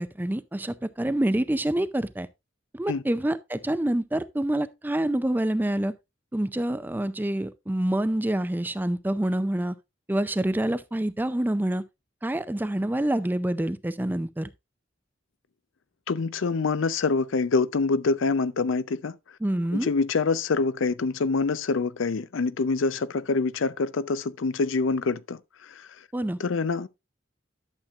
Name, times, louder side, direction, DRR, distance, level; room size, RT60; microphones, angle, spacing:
voice 1, 0.0-2.3 2.7-5.9 6.3-9.8 10.1-11.8 12.2-14.5 19.4-19.9 26.1-26.4, right 1 dB, 10° right, 0.4 m, -27 dB
voice 2, 16.1-19.1 19.7-25.4 25.8-25.9 26.4-26.9, left 4 dB, 85° left, 0.5 m, -25 dB
11.5 x 7.3 x 2.4 m
head